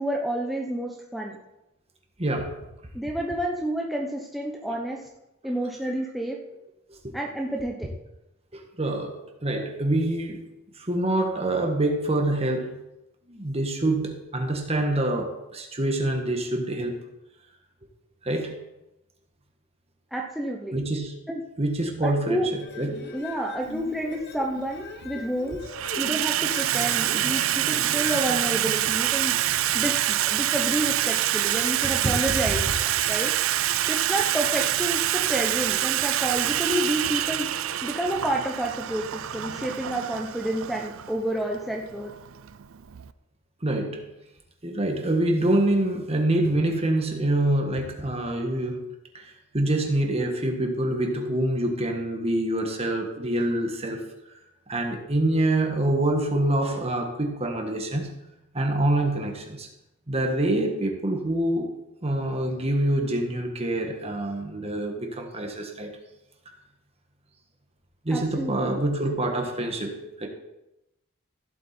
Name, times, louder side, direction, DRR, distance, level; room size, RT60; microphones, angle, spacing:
voice 1, 0.0-1.4 2.9-5.0 5.4-6.4 7.1-7.9 20.1-20.8 21.3-21.4 22.0-22.5 23.1-25.6 26.0-29.4 29.7-32.7 33.1-33.3 33.9-37.5 37.8-39.0 39.3-42.1 68.1-68.8, right 1 dB, ahead, -1 dB, 0.9 m, -29 dB
voice 2, 2.2-2.6 6.9-7.1 8.5-10.5 10.8-12.8 13.3-17.0 18.2-18.6 20.7-21.1 21.6-22.9 32.0-32.5 43.6-44.0 44.6-48.8 49.1-54.1 54.7-58.1 58.5-59.7 60.1-61.7 62.0-66.0 68.0-70.3, right 1 dB, 30° right, 3 dB, 1.6 m, -26 dB
sound 1, 22.4-29.2, left 4 dB, 50° left, 1.1 m, -42 dB
Water tap faucet / Sink (filling or washing), 23.7-23.9 24.8-25.2 25.5-43.1, right 12 dB, 65° right, 0.5 m, -26 dB
15.0 x 8.1 x 4.4 m, 0.92 s
head